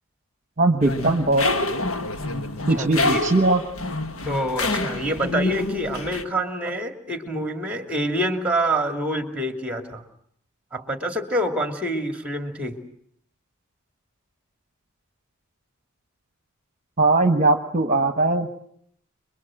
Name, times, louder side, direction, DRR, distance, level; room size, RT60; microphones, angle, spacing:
voice 1, 0.6-1.5 2.7-3.6 17.0-18.5, right 2 dB, 35° right, 7 dB, 1.2 m, -20 dB
sound 1, 0.8-6.2, left 2 dB, 65° left, 1.6 m, -27 dB
voice 2, 2.8-3.3 4.2-10.0 10.7-12.8, right 1 dB, 5° right, 5 dB, 2.7 m, -26 dB
27.5 x 22.5 x 7.8 m, 0.68 s
head